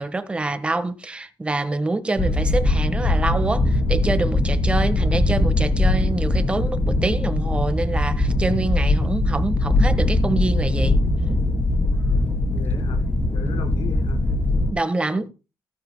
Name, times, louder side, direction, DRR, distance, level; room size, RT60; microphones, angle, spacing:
voice 1, 0.0-11.0 14.7-15.3, right 2 dB, 15° right, 1.4 m, -26 dB
sound 1, 2.2-14.7, left 2 dB, 25° left, 3.1 m, -21 dB
voice 2, 12.5-13.0 13.3-14.2 15.0-15.3, left 5 dB, 75° left, 4.7 m, -38 dB
18.0 x 11.5 x 2.2 m
cardioid pair, 140°, 8 cm